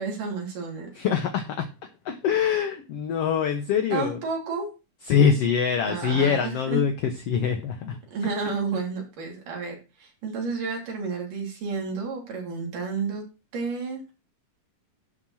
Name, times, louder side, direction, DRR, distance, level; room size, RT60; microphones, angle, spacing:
voice 1, 0.0-0.9 3.9-4.7 5.9-6.8 8.1-13.2 13.5-14.1, right 4 dB, 90° right, 0 dB, 4.8 m, -31 dB
voice 2, 0.9-1.7 2.1-4.2 5.1-8.0, left 7 dB, 65° left, 6 dB, 1.6 m, -24 dB
11.5 x 4.4 x 6.3 m, 0.29 s
omnidirectional pair, 3.6 m